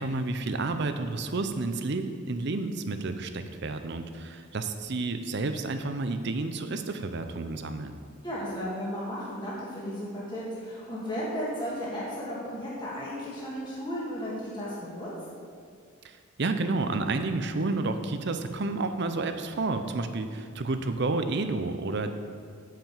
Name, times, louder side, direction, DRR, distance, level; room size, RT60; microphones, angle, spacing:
voice 1, 0.0-7.9 16.0-22.1, right 3 dB, 50° right, 8 dB, 0.6 m, -30 dB
voice 2, 8.2-15.1, equal, 20° left, -8 dB, 1.7 m, -34 dB
9.1 x 5.1 x 7.3 m, 2.1 s
head